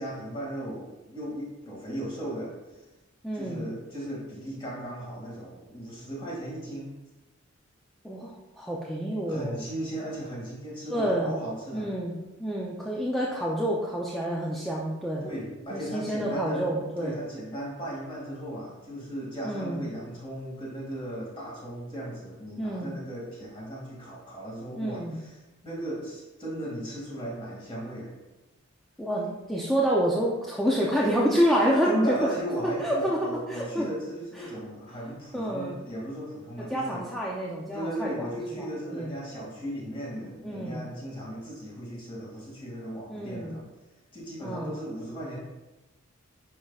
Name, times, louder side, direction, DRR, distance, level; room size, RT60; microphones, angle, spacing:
voice 1, 0.0-2.6 3.3-6.9 9.3-11.9 15.2-16.7 17.0-25.4 25.6-28.1 31.9-37.0 37.7-43.6 44.1-45.4, right 1 dB, 25° left, -5 dB, 2.2 m, -36 dB
voice 2, 3.2-3.6 8.0-9.6 10.9-11.3 11.7-15.2 15.7-17.2 19.4-19.9 22.6-22.9 24.8-25.2 29.0-32.3 32.8-33.9 35.3-35.7 36.7-38.7 38.9-39.1 40.4-40.8 43.1-43.6 44.4-44.8, equal, ahead, -5 dB, 0.6 m, -28 dB
9.9 x 5.6 x 2.4 m, 1.1 s
head